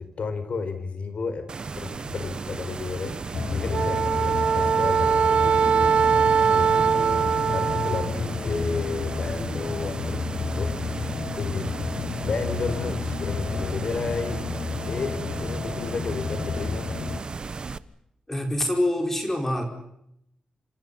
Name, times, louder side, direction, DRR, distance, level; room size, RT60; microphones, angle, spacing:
voice 1, 0.0-1.5 1.7-6.0 6.5-11.7 12.2-14.4 14.9-16.9, left 4 dB, 60° left, 10 dB, 5.0 m, -32 dB
sound 1, 1.5-17.8, right 4 dB, 40° right, 1.2 m, -35 dB
sound 2, 3.3-17.2, left 5 dB, 75° left, 2.7 m, -31 dB
Wind instrument woodwind instrument, 3.7-8.1, right 6 dB, 65° right, 1.2 m, -21 dB
voice 2, 18.3-19.6, left 1 dB, 15° left, 4 dB, 5.1 m, -25 dB
29.0 x 26.5 x 5.7 m, 0.75 s
wide cardioid pair, 130°, 2 cm